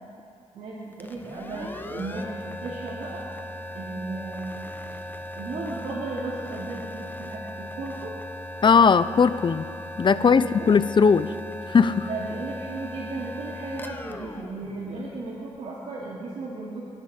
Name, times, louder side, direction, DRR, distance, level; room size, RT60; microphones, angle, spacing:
voice 1, 0.5-3.2 3.7-4.6 5.4-8.1 10.1-10.7 12.0-16.8, right 3 dB, 75° right, -6 dB, 2.7 m, -35 dB
sound 1, 0.9-15.5, left 1 dB, 15° left, 1.1 m, -38 dB
voice 2, 8.6-9.7 10.0-11.3 11.7-12.1, left 5 dB, 40° left, 14 dB, 0.6 m, -18 dB
28.0 x 11.0 x 4.4 m, 2.6 s
cardioid pair, 75°, 12 cm